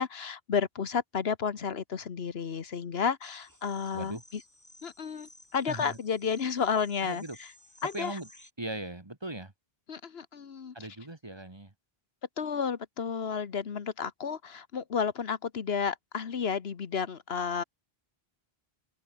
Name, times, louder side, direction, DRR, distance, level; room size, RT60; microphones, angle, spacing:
voice 1, 0.0-4.4 4.8-7.5 7.8-8.2 9.9-10.7 12.4-17.6, left 6 dB, 80° left, 1.4 m, -32 dB
sound 1, 3.2-8.5, left 1 dB, 15° left, 4.6 m, -56 dB
voice 2, 5.7-6.0 7.0-7.4 7.9-8.3 8.6-9.5 10.7-11.7, right 2 dB, 25° right, 1.7 m, -39 dB
omnidirectional pair, 1.0 m